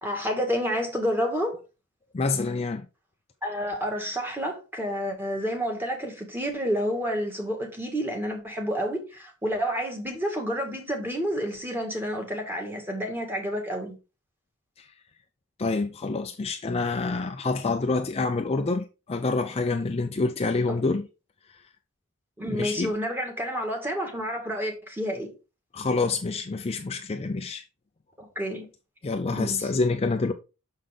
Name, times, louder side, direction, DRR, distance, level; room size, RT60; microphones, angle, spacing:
voice 1, 0.0-1.5 3.4-13.9 20.7-20.8 22.4-25.3 28.2-28.7 29.3-29.7, equal, 10° right, 1.7 m, -29 dB
voice 2, 2.1-2.9 14.8-14.9 15.6-21.1 21.5-21.6 22.5-22.9 25.7-27.6 29.0-30.3, left 3 dB, 25° left, 0.4 m, -27 dB
6.4 x 5.7 x 3.4 m
head